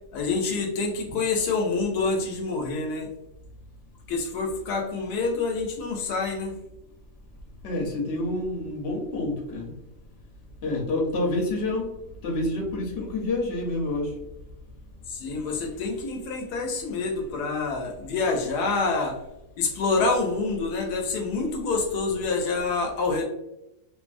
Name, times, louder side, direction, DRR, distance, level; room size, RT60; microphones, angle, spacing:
voice 1, 0.0-3.1 4.1-6.6 15.1-19.2 19.6-23.3, left 3 dB, 80° left, 2 dB, 1.2 m, -27 dB
voice 2, 7.6-9.7 10.6-11.9 12.2-14.1, left 2 dB, 55° left, 0 dB, 0.9 m, -28 dB
2.6 x 2.6 x 2.4 m, 0.89 s
omnidirectional pair, 1.7 m